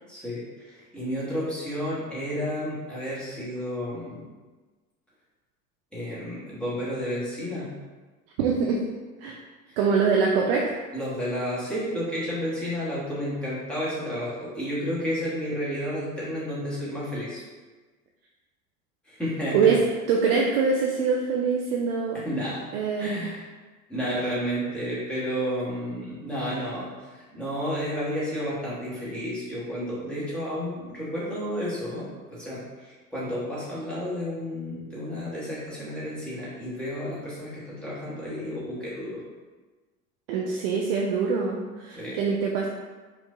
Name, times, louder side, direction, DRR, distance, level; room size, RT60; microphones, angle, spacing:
voice 1, 0.1-4.2 5.9-7.7 9.7-9.8 10.9-17.4 19.0-19.7 22.1-22.7 23.0-23.4 23.9-39.2 41.9-42.2, equal, ahead, -9 dB, 1.4 m, -31 dB
voice 2, 8.4-8.8 9.2-9.4 9.8-10.7 19.5-19.8 20.1-22.2 22.7-23.2 40.3-42.7, right 5 dB, 40° right, -1 dB, 0.4 m, -24 dB
4.7 x 2.5 x 2.6 m, 1.3 s
figure-of-eight pair, 80°, 46 cm